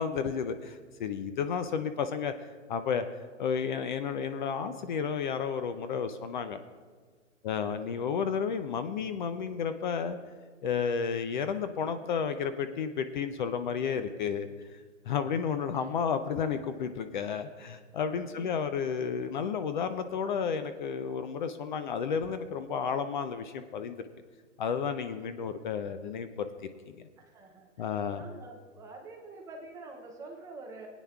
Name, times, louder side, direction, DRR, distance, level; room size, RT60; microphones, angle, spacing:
voice 1, 0.0-2.3 2.7-3.0 3.4-6.6 7.4-10.2 10.6-14.8 15.1-24.0 24.6-26.5 27.0-27.1 27.8-28.2, left 6 dB, 40° left, 10 dB, 0.5 m, -32 dB
voice 2, 1.4-1.8 7.5-7.8 15.7-15.9 18.3-18.7 27.2-30.9, right 3 dB, 10° right, 1 dB, 0.5 m, -48 dB
18.5 x 9.0 x 2.3 m, 1.5 s
hypercardioid pair, 140°, 38 cm